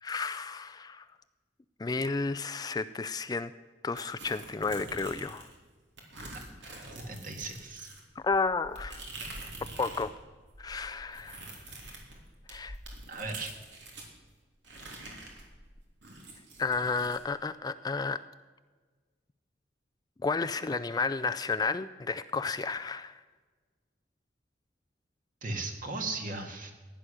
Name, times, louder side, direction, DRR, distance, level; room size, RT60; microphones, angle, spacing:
voice 1, 0.0-1.1 1.8-3.5 3.8-5.5 8.2-9.0 9.8-10.2 10.6-11.5 12.5-12.8 16.6-18.2 20.2-23.2, left 4 dB, 20° left, 12 dB, 0.4 m, -32 dB
sound 1, 4.0-5.6 6.0-10.1 10.4-14.1 14.6-17.2, right 2 dB, 75° right, 3.3 m, -46 dB
voice 2, 7.1-7.9 13.1-13.6 25.4-26.7, right 3 dB, 50° right, 4 dB, 2.0 m, -37 dB
15.5 x 10.0 x 6.4 m, 1.4 s
head